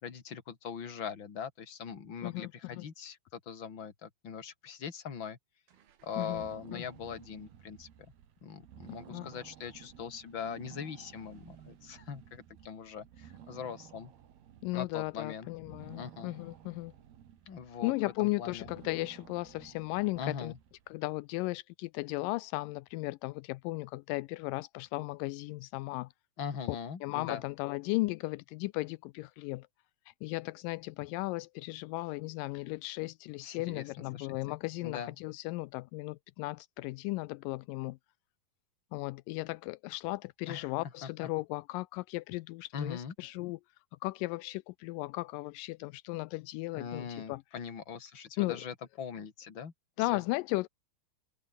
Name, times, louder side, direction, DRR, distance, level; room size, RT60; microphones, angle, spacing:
voice 1, 0.0-5.4 6.0-7.9 8.4-14.1 14.7-15.5 16.0-16.3 17.5-18.7 20.2-20.6 26.4-27.4 33.4-34.3 34.8-35.1 40.5-40.7 41.0-41.1 42.7-43.1 46.7-49.7 50.1-50.2, left 7 dB, 35° left, 2.7 m, -41 dB
voice 2, 2.2-2.9 6.2-6.4 6.7-6.8 9.1-9.3 14.6-16.9 17.8-20.5 20.9-26.1 26.7-26.8 27.0-29.7 30.2-38.0 38.9-43.6 44.0-47.4 48.4-48.6 50.0-50.7, left 21 dB, 85° left, 1.9 m, -36 dB
sound 1, 5.7-21.1, right 10 dB, 80° right, 4.2 m, -55 dB
omnidirectional pair, 4.4 m